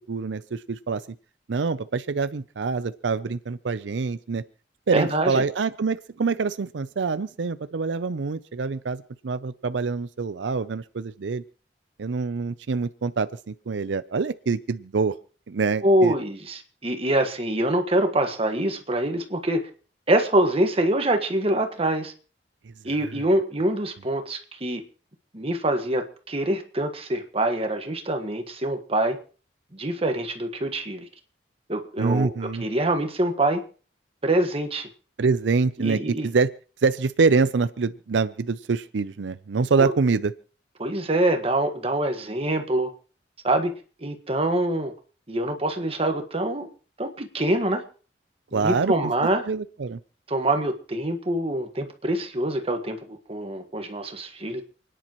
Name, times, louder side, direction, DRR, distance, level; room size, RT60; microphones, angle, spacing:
voice 1, 0.1-1.0 1.5-4.4 4.9-11.4 12.0-15.1 15.5-16.1 32.0-32.7 35.2-36.5 36.8-40.3 48.5-49.1 49.5-50.0, right 4 dB, 85° right, 14 dB, 0.5 m, -25 dB
voice 2, 4.9-5.4 15.8-19.6 20.1-22.1 22.8-24.8 25.3-29.2 29.7-31.1 31.7-33.6 34.2-34.9 35.8-36.3 39.8-39.9 40.8-42.9 43.4-43.7 44.0-44.9 45.3-46.7 47.0-47.8 48.5-49.4 50.3-54.6, right 1 dB, 35° right, 5 dB, 1.5 m, -25 dB
29.0 x 10.0 x 3.0 m, 0.40 s
head